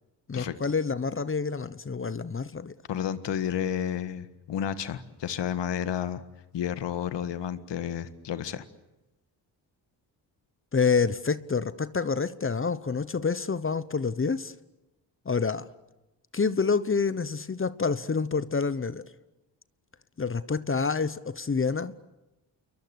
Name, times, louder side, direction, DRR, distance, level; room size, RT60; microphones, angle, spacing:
voice 1, 0.3-2.7 10.7-14.5 15.3-15.7 16.3-19.1 20.2-21.9, left 5 dB, 30° left, 1.0 m, -27 dB
voice 2, 2.9-6.2 6.5-8.6, left 9 dB, 75° left, 1.7 m, -31 dB
29.0 x 23.0 x 8.2 m
cardioid pair, 75°, 43 cm